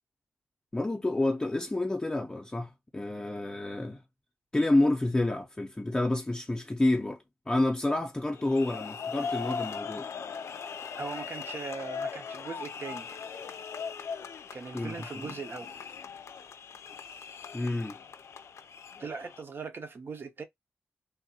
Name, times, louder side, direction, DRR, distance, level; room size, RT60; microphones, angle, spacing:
voice 1, 0.7-4.0 4.5-10.1 14.7-15.4 17.5-18.0, left 2 dB, 15° left, 0.5 m, -29 dB
sound 1, 8.3-19.4, left 6 dB, 80° left, 0.4 m, -39 dB
voice 2, 11.0-13.1 14.5-15.8 19.0-20.4, right 4 dB, 55° right, 0.7 m, -39 dB
3.4 x 2.3 x 2.7 m
wide cardioid pair, 115°, 5 cm